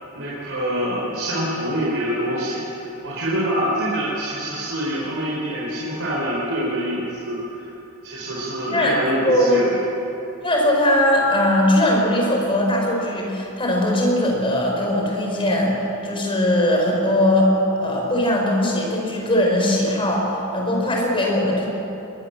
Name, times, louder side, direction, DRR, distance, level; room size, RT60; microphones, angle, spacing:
voice 1, 0.1-2.6 3.0-7.7 8.0-9.7, equal, 65° right, -6 dB, 4.8 m, -25 dB
voice 2, 9.2-9.6 10.4-21.7, left 1 dB, 25° left, -1 dB, 5.2 m, -20 dB
22.0 x 21.5 x 7.2 m, 2.9 s
head